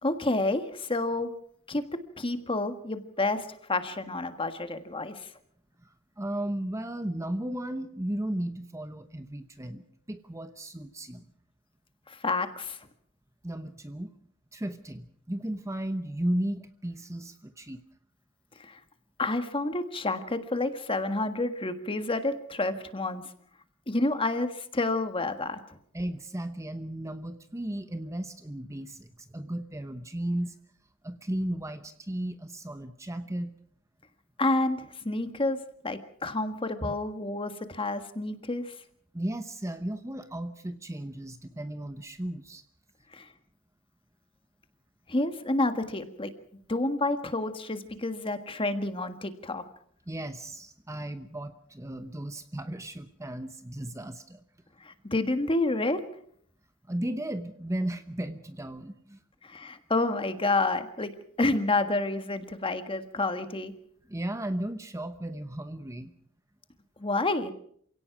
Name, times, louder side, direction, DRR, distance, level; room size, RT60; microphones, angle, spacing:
voice 1, 0.0-1.3 1.7-5.3 12.1-12.8 18.6-18.8 19.2-23.2 23.9-25.6 34.4-35.6 35.8-38.7 43.1-43.3 45.1-46.3 46.7-49.6 54.8-56.0 59.4-63.7 67.0-67.5, left 2 dB, 25° left, 9 dB, 1.6 m, -29 dB
voice 2, 5.8-11.3 13.4-14.1 14.5-17.8 25.9-30.6 31.0-33.5 36.8-36.9 39.1-42.6 50.1-54.4 56.9-59.2 64.1-66.1, right 1 dB, 15° right, 10 dB, 0.9 m, -35 dB
27.5 x 17.5 x 6.0 m, 0.64 s
head